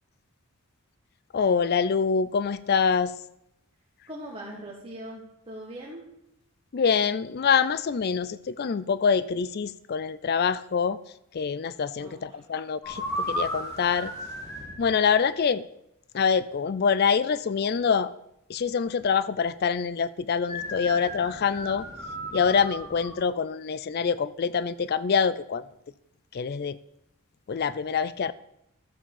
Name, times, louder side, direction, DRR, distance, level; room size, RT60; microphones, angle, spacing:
voice 1, 1.3-3.1 6.7-11.0 11.3-14.1 14.8-15.6 16.1-18.1 18.5-21.9 22.3-25.7 26.3-26.8 27.5-28.3, left 6 dB, 45° left, 17 dB, 0.4 m, -25 dB
voice 2, 4.1-6.0 12.0-12.4, right 1 dB, 25° right, -3 dB, 1.7 m, -41 dB
sound 1, 12.8-14.8 20.5-23.2, equal, 15° left, 4.3 m, -34 dB
12.5 x 7.3 x 7.1 m, 0.80 s
head